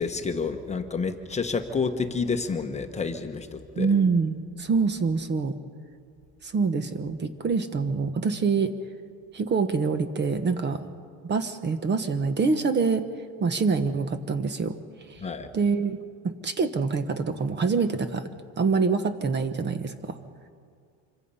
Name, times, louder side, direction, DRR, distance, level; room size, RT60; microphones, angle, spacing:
voice 1, 0.0-3.9 15.2-15.5, left 5 dB, 15° left, 5 dB, 1.1 m, -29 dB
voice 2, 3.8-5.5 6.4-8.8 9.3-10.8 11.2-13.1 13.4-14.8 15.1-15.2 15.5-16.0 16.2-20.2, right 4 dB, 25° right, 10 dB, 1.1 m, -25 dB
26.0 x 24.5 x 5.6 m, 2.1 s
cardioid pair, 150°, 40 cm